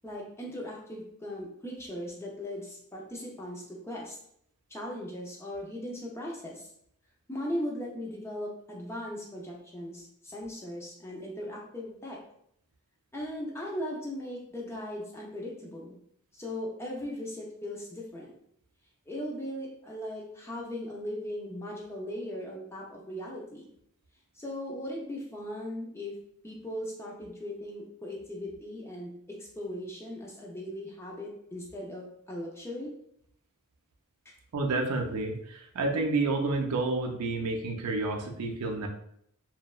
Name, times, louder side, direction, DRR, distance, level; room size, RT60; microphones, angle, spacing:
voice 1, 0.0-4.2 4.7-6.7 7.3-12.2 13.1-15.9 16.3-18.3 19.1-23.7 24.3-26.2 26.4-32.9 34.3-34.4, left 1 dB, 10° left, -3 dB, 0.4 m, -38 dB
voice 2, 34.5-38.9, right 3 dB, 85° right, 2 dB, 0.5 m, -29 dB
2.7 x 2.1 x 2.3 m, 0.70 s
head